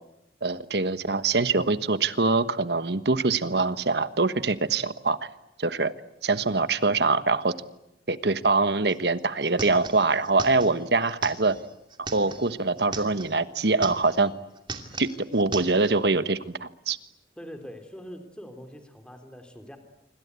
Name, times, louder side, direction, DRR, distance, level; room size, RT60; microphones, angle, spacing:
voice 1, 0.4-5.2 5.6-5.9 6.2-7.5 8.1-11.6 12.0-14.3 15.0-17.0, right 3 dB, 70° right, 12 dB, 1.3 m, -24 dB
sound 1, 8.9-9.0 9.2-13.4 13.7-14.3 14.6-16.0, right 4 dB, 25° right, 2.6 m, -38 dB
voice 2, 17.4-19.8, equal, 5° left, 6 dB, 3.5 m, -43 dB
27.0 x 25.0 x 8.4 m, 0.86 s
head